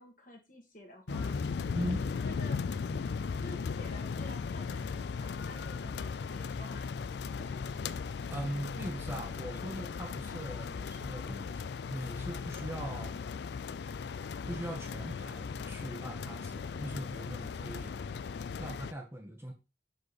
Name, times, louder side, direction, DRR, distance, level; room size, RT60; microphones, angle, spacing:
voice 1, 0.0-1.4 2.0-2.7 3.4-6.9 7.4-7.6 10.6-10.9 13.1-13.3, left 1 dB, 45° left, 2 dB, 1.7 m, -51 dB
sound 1, 1.1-2.1 2.9-3.7 4.1-4.8 5.4-6.0, left 1 dB, 80° left, 1.1 m, -46 dB
sound 2, 1.1-18.9, left 5 dB, 60° left, 0.3 m, -37 dB
voice 2, 1.7-2.1 8.3-11.6 11.9-13.2 14.5-18.0 18.6-19.5, right 1 dB, 15° right, 1 dB, 1.1 m, -40 dB
6.3 x 5.2 x 4.2 m, 0.30 s
head